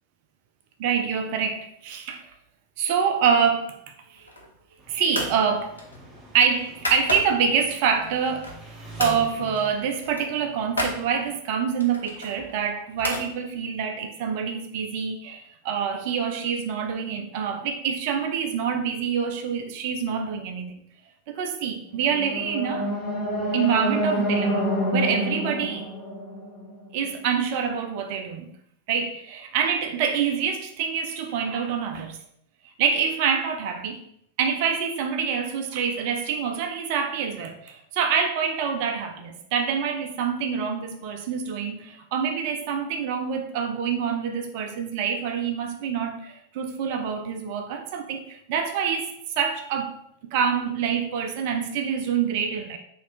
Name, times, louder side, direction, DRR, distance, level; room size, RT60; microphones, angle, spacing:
voice 1, 0.8-2.3 2.8-4.3 4.9-5.7 6.3-8.6 9.0-20.7 21.3-22.9 23.5-25.9 26.9-28.6 28.9-32.2 32.8-34.0 34.4-50.0 50.3-52.8, right 7 dB, 45° right, 0.4 m, -26 dB
sound 1, 4.2-4.6 5.1-5.4 5.8-7.6 8.0-8.7 9.0-9.2 9.5-9.7 9.9-11.0 11.8-13.3, left 1 dB, 80° left, 0.6 m, -32 dB
Engine, 4.8-11.3, right 1 dB, 20° right, 0.7 m, -45 dB
sound 2, 22.0-27.1, equal, 20° left, 1.1 m, -27 dB
2.8 x 2.4 x 3.1 m
figure-of-eight pair, 90°, 0 cm